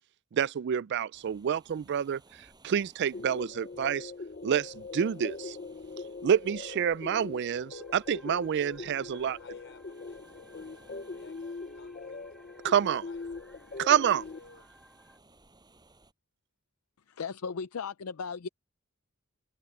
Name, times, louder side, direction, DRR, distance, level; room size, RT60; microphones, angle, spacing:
voice 1, 0.3-2.2 2.6-4.1 4.4-5.6 6.2-9.4 12.6-13.0 13.8-14.2, right 8 dB, 50° right, 0.3 m, -28 dB
sound 1, 1.1-16.1, right 2 dB, 20° right, 5.8 m, -62 dB
sound 2, 3.1-14.4, left 3 dB, 40° left, 0.7 m, -42 dB
sound 3, 7.7-15.2, equal, ahead, 5.2 m, -60 dB
voice 2, 9.0-13.4 14.3-14.7, left 3 dB, 55° left, 4.7 m, -58 dB
voice 3, 17.1-18.5, left 5 dB, 80° left, 0.5 m, -36 dB
head